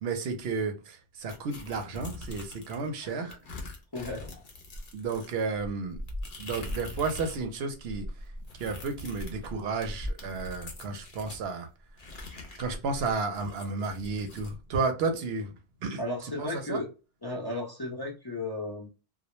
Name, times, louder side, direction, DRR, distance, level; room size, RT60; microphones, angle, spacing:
voice 1, 0.0-3.4 4.9-6.0 6.4-8.1 8.6-11.7 12.6-15.6 15.8-16.0 16.4-16.8, right 4 dB, 80° right, 0.8 m, -32 dB
sound 1, 1.3-2.9 3.3-7.4 7.7-11.4 12.0-14.5, left 1 dB, 60° left, 0.8 m, -41 dB
voice 2, 3.0-3.4 3.9-4.3 15.1-15.2 16.0-16.9 17.2-18.9, left 2 dB, 30° left, 0.5 m, -35 dB
2.2 x 2.0 x 2.9 m
omnidirectional pair, 1.0 m